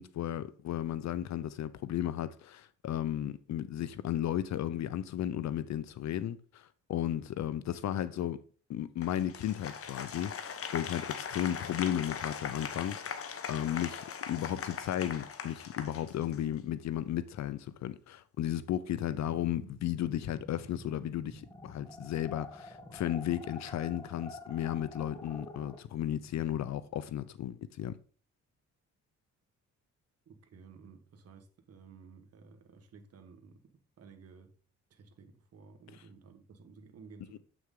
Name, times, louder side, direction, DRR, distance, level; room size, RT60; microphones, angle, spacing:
voice 1, 0.0-8.4 8.7-10.3 10.7-13.0 13.5-27.9, left 11 dB, 65° left, 0.7 m, -34 dB
Applause, 9.0-16.6, left 7 dB, 50° left, 1.1 m, -40 dB
sound 1, 19.6-25.8, left 1 dB, 10° left, 2.9 m, -48 dB
voice 2, 30.2-33.6 34.0-34.5 34.9-37.4, right 5 dB, 55° right, 1.5 m, -54 dB
8.0 x 6.2 x 3.8 m
cardioid pair, 90°, 30 cm